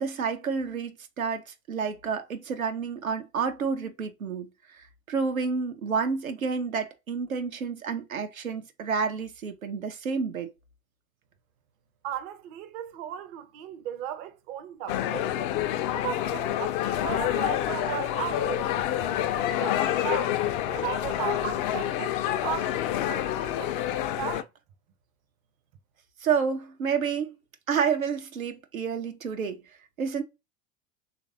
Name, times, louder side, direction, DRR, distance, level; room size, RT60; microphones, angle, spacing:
voice 1, 0.0-4.5 4.8-10.5 26.2-27.3 27.7-29.6 30.0-30.2, right 6 dB, 85° right, 0.6 m, -29 dB
voice 2, 12.0-15.5 15.9-20.3 20.7-24.5, right 10 dB, 40° right, 0.5 m, -36 dB
sound 1, 14.9-24.4, left 12 dB, 45° left, 0.4 m, -28 dB
3.1 x 2.5 x 2.6 m
figure-of-eight pair, 80°, 40 cm